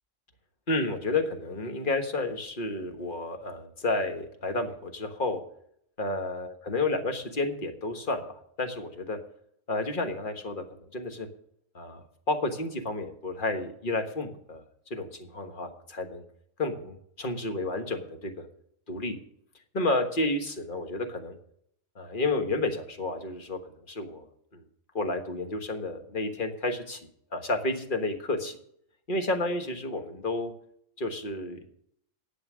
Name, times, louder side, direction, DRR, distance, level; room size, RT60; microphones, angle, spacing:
voice 1, 0.7-5.4 6.0-9.2 9.7-11.3 11.7-14.6 14.9-16.2 16.6-18.3 18.9-19.2 19.7-21.3 21.9-24.3 24.5-24.6 24.9-27.0 27.3-28.6 29.1-30.5 31.0-31.7, left 2 dB, 40° left, 5 dB, 1.5 m, -31 dB
11.5 x 7.8 x 6.2 m, 0.69 s
omnidirectional pair, 1.4 m